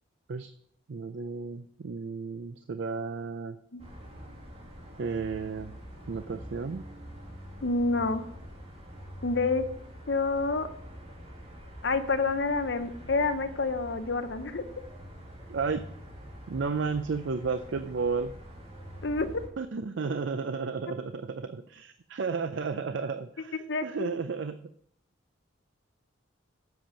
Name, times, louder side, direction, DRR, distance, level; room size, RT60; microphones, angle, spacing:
voice 1, 0.9-3.6 5.0-5.8 6.1-6.8 15.5-15.9 16.5-18.3 19.6-24.6, right 4 dB, 65° right, 10 dB, 0.4 m, -33 dB
sound 1, 3.8-19.5, equal, 30° right, 2.2 m, -46 dB
voice 2, 7.6-8.3 9.2-9.7 10.1-10.7 11.8-14.7 19.0-19.3 23.7-24.2, left 3 dB, 55° left, 10 dB, 0.7 m, -28 dB
7.7 x 7.1 x 6.3 m, 0.70 s
head